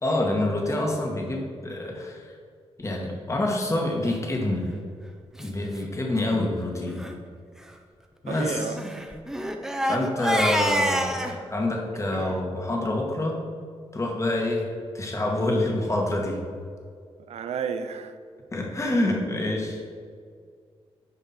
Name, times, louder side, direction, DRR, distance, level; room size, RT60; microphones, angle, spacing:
voice 1, 0.0-2.3 2.8-4.7 5.4-7.0 8.2-8.8 9.8-13.4 13.9-14.7 14.9-16.4 18.5-19.8, left 1 dB, 25° left, 0 dB, 1.6 m, -27 dB
Crying sobbing, 4.5-4.7 5.4-5.5 5.8-5.9 6.2-6.4 6.9-7.1 8.3-11.4, equal, 5° right, 0.8 m, -28 dB
voice 2, 8.3-8.8 12.1-12.4 17.3-18.2, right 6 dB, 80° right, 9 dB, 0.6 m, -32 dB
9.9 x 5.1 x 4.3 m, 2.1 s
cardioid pair, 90°, 11 cm